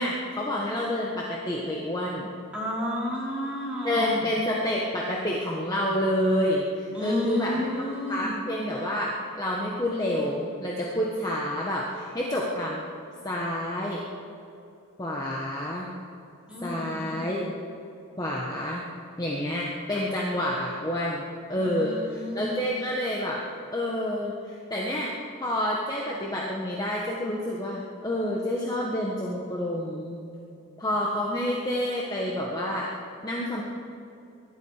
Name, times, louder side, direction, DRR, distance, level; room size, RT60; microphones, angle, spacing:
voice 1, 0.0-2.3 3.8-12.8 13.2-14.0 15.0-15.9 16.6-17.5 18.2-18.8 19.2-21.2 21.5-23.4 23.7-25.1 25.4-30.2 30.8-32.9 33.2-33.6, left 1 dB, 15° left, -3 dB, 1.4 m, -28 dB
voice 2, 2.5-4.2 6.9-8.3 16.5-17.2 21.5-22.6, left 1 dB, 5° right, -7 dB, 4.2 m, -31 dB
23.5 x 12.0 x 4.9 m, 2.7 s
head